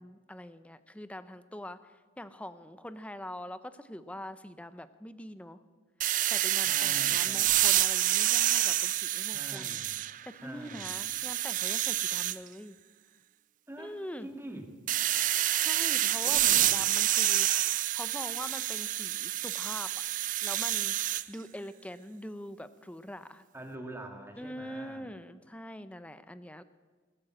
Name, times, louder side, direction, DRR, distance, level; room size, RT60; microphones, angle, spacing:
voice 1, 0.0-5.6 6.2-9.8 10.3-12.8 13.8-14.3 15.5-20.0 20.4-23.4 24.4-26.6, left 1 dB, 5° left, 13 dB, 0.6 m, -44 dB
sound 1, 6.0-10.3 10.7-12.4 14.9-21.2, right 13 dB, 45° right, 0.4 m, -28 dB
voice 2, 6.6-7.6 9.3-10.0 10.4-11.0 13.7-14.7 16.2-16.8 23.5-25.1, right 1 dB, 15° right, 3 dB, 1.9 m, -45 dB
20.0 x 9.0 x 7.6 m, 1.4 s
head